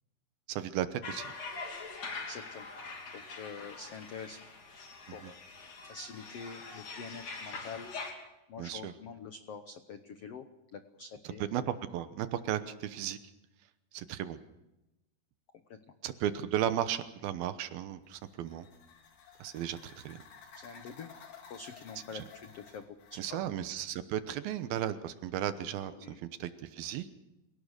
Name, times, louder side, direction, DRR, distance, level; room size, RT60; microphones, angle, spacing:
voice 1, 0.5-1.3 5.1-5.3 8.6-8.9 11.4-13.2 13.9-14.4 16.0-18.7 19.4-20.2 22.1-22.2 23.1-25.9 26.2-27.1, right 11 dB, 75° right, 11 dB, 2.8 m, -35 dB
sound 1, 1.0-8.1, left 4 dB, 45° left, 3.9 m, -43 dB
voice 2, 2.3-2.7 3.1-4.4 5.1-5.4 5.8-7.9 8.5-10.5 10.7-11.4 20.6-21.1 21.5-23.4 25.9-26.2, left 5 dB, 85° left, 8 dB, 1.3 m, -46 dB
sound 2, 18.0-23.3, left 6 dB, 60° left, 3.9 m, -54 dB
28.0 x 18.0 x 6.6 m, 0.97 s
omnidirectional pair, 4.5 m